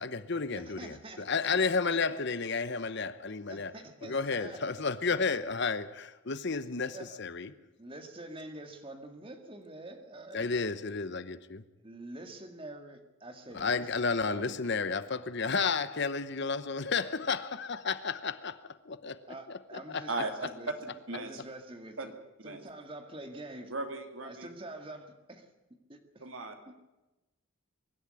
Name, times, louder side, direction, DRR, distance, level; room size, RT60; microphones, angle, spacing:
voice 1, 0.0-3.7 4.0-7.5 10.3-11.6 13.5-20.0, left 4 dB, 55° left, 13 dB, 0.9 m, -32 dB
voice 2, 0.6-1.3 3.5-4.9 5.3-5.4 6.9-7.2 7.8-10.5 11.8-14.0 14.3-14.7 19.3-22.1 22.4-23.7 24.2-25.5 25.9-26.2 26.7-26.8, right 1 dB, 25° right, 6 dB, 2.0 m, -46 dB
voice 3, 23.7-24.5 26.2-26.5, right 2 dB, 65° right, 5 dB, 2.7 m, -36 dB
23.0 x 12.0 x 9.8 m, 1.0 s
head